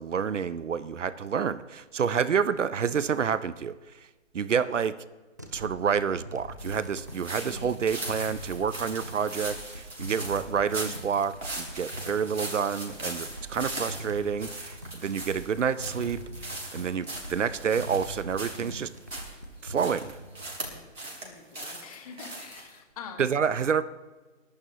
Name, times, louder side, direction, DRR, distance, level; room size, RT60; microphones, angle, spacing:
voice 1, 0.0-3.7 4.3-5.0 5.5-18.9 19.6-20.1 23.2-23.8, right 7 dB, 70° right, 16 dB, 0.7 m, -28 dB
sound 1, 5.4-20.8, equal, 15° right, 0.4 m, -42 dB
sound 2, 6.6-19.4 19.8-21.3 21.5-22.8, right 2 dB, 90° right, 4.5 m, -39 dB
voice 2, 7.4-7.8 21.2-23.4, left 6 dB, 30° left, 6 dB, 1.5 m, -46 dB
29.5 x 11.5 x 2.9 m, 1.3 s
figure-of-eight pair, 145°, 39 cm